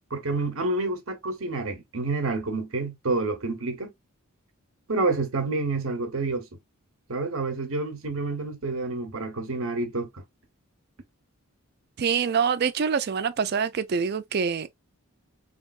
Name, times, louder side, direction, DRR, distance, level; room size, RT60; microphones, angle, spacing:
voice 1, 0.1-3.9 4.9-6.5 7.1-10.2, right 3 dB, 65° right, 1.1 m, -28 dB
voice 2, 12.0-14.8, right 6 dB, 45° right, 0.4 m, -25 dB
4.2 x 3.4 x 2.4 m
head